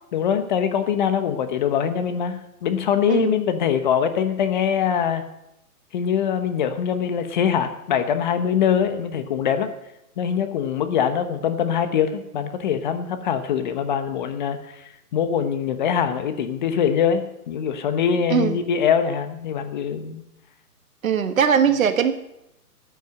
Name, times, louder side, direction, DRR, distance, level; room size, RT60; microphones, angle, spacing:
voice 1, 0.1-5.2 5.9-9.7 10.2-20.2, left 8 dB, 30° left, 9 dB, 1.1 m, -23 dB
voice 2, 18.3-18.6 21.0-22.1, right 7 dB, 60° right, 9 dB, 1.5 m, -20 dB
14.5 x 9.3 x 6.5 m, 0.87 s
hypercardioid pair, 150°, 46 cm